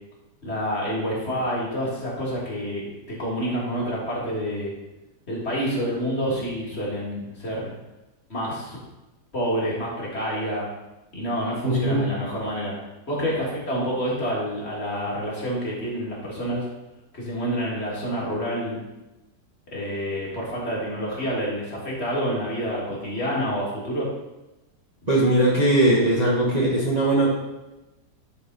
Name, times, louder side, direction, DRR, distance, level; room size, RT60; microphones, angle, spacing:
voice 1, 0.4-4.7 5.3-7.7 8.3-8.8 9.3-10.7 11.1-12.7 13.1-16.6 17.1-18.8 19.7-24.1, equal, 40° left, -5 dB, 2.2 m, -28 dB
voice 2, 11.6-12.1 25.1-27.3, right 1 dB, 25° right, -5 dB, 1.2 m, -20 dB
10.5 x 4.7 x 4.0 m, 1.0 s
omnidirectional pair, 1.8 m